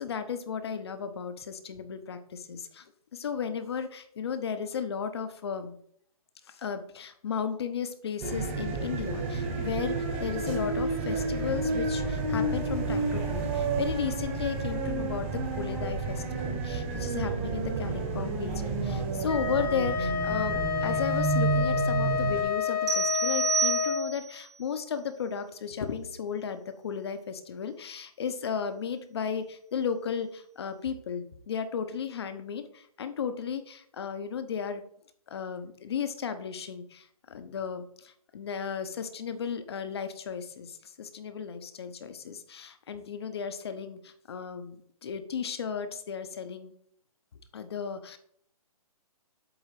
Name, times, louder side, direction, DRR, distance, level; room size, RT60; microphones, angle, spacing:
voice 1, 0.0-2.8 3.1-5.8 6.5-34.8 35.3-44.8 45.0-46.7 47.5-48.2, left 7 dB, 45° left, 10 dB, 0.9 m, -35 dB
sound 1, 8.2-22.4, right 3 dB, 20° right, 1.2 m, -30 dB
Wind instrument woodwind instrument, 19.3-24.1, left 7 dB, 85° left, 2.7 m, -29 dB
sound 2, 22.9-24.4, right 6 dB, 50° right, 1.3 m, -29 dB
8.0 x 3.9 x 5.8 m, 0.65 s
hypercardioid pair, 170°, 19 cm